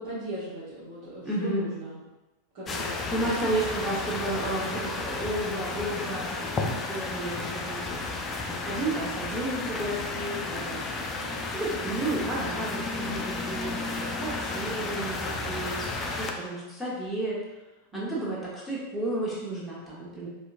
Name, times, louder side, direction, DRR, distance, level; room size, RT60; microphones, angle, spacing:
voice 1, 0.0-2.0 2.5-3.3 17.9-18.3, right 1 dB, 45° right, -11 dB, 1.1 m, -38 dB
voice 2, 1.2-1.6 2.8-8.1 8.6-10.9 11.5-17.4 17.9-20.3, right 1 dB, ahead, -7 dB, 1.1 m, -32 dB
sound 1, 2.7-16.3, left 3 dB, 20° left, 0.4 m, -33 dB
4.1 x 2.5 x 2.5 m, 1.1 s
figure-of-eight pair, 90°, 0 cm